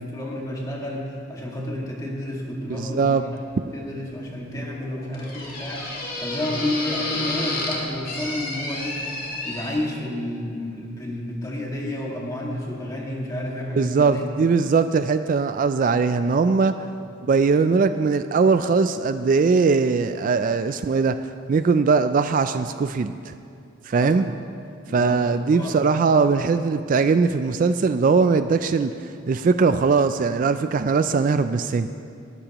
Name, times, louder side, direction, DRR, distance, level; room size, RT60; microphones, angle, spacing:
voice 1, 0.0-3.4 3.7-9.0 9.4-14.2 17.0-17.1 24.0-24.1 24.8-25.2 25.5-26.1, left 1 dB, 20° left, -3 dB, 1.9 m, -31 dB
voice 2, 2.8-3.2 13.8-16.7 17.3-21.2 21.5-23.3 23.9-24.3 24.9-31.9, right 4 dB, 45° right, 10 dB, 0.3 m, -20 dB
sound 1, 3.5-9.7, left 2 dB, 50° left, 2.2 m, -32 dB
20.5 x 11.5 x 3.0 m, 2.4 s
head